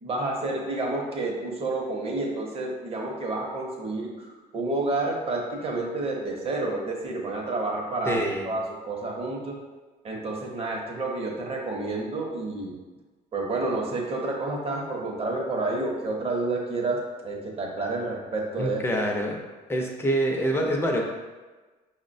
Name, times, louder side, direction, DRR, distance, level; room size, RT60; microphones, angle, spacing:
voice 1, 0.0-4.3 4.5-9.6 10.0-12.7 13.3-18.8, right 2 dB, 35° right, -1 dB, 0.8 m, -29 dB
voice 2, 8.1-8.5 18.6-19.4 19.7-21.0, right 1 dB, 15° left, 0 dB, 0.6 m, -25 dB
5.5 x 2.1 x 2.6 m, 1.3 s
cardioid pair, 110°, 17 cm